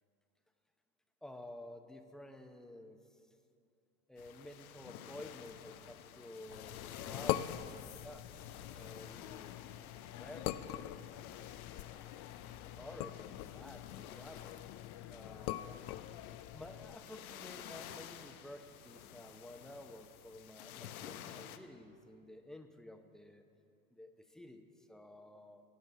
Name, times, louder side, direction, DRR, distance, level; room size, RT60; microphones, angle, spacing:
voice 1, 1.2-3.2 4.1-8.3 8.7-11.0 12.6-13.9 14.1-14.6 15.1-15.8 16.5-23.4 23.9-25.6, left 1 dB, ahead, 6 dB, 0.8 m, -52 dB
sound 1, 4.2-21.6, left 10 dB, 80° left, 0.8 m, -51 dB
sound 2, 6.5-17.0, left 14 dB, 40° left, 0.4 m, -43 dB
15.0 x 5.4 x 8.4 m, 2.4 s
hypercardioid pair, 95°, 42 cm